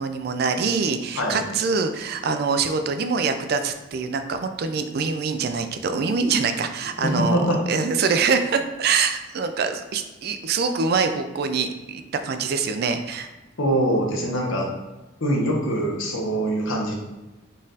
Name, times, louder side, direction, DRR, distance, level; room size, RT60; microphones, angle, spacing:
voice 1, 0.0-13.3, right 5 dB, 50° right, 8 dB, 0.3 m, -24 dB
voice 2, 7.0-7.6 13.6-14.7 15.2-17.0, right 1 dB, 85° left, -1 dB, 1.0 m, -23 dB
4.0 x 2.5 x 4.0 m, 1.1 s
head